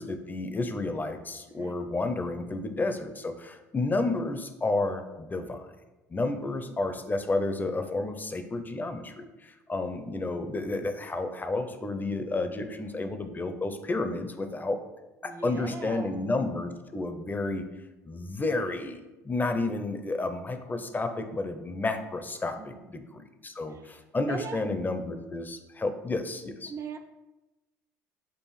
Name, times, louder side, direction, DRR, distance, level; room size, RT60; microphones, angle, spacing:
voice 1, 0.0-5.7 6.1-14.8 15.2-17.6 18.1-26.7, left 2 dB, 20° left, 7 dB, 0.6 m, -31 dB
voice 2, 12.6-13.0 15.2-16.3 22.6-22.9 23.7-24.6 26.7-27.0, right 5 dB, 30° right, 6 dB, 0.5 m, -40 dB
6.8 x 2.5 x 3.1 m, 1.1 s
hypercardioid pair, 65°, 9 cm